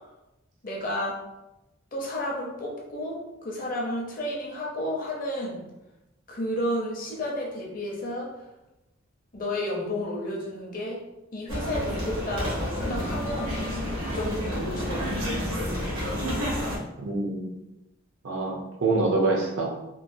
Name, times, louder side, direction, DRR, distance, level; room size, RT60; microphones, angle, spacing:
voice 1, 0.6-1.2 1.9-5.6 6.3-8.3 9.3-11.0 11.3-13.6 14.0-15.3, left 1 dB, 40° left, -2 dB, 0.6 m, -31 dB
sound 1, 11.5-16.8, equal, 85° right, 1.2 m, -30 dB
voice 2, 17.0-17.5 18.2-19.7, right 3 dB, 70° right, 0 dB, 0.6 m, -25 dB
3.1 x 2.2 x 2.5 m, 0.97 s
head